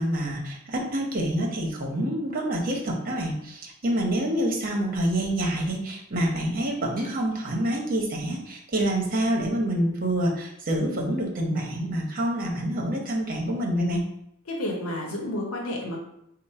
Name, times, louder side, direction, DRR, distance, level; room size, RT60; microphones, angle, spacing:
voice 1, 0.0-14.0, right 1 dB, 40° right, 0 dB, 0.9 m, -27 dB
voice 2, 14.5-16.0, left 1 dB, 75° left, 0 dB, 0.8 m, -30 dB
4.5 x 2.1 x 4.2 m, 0.77 s
head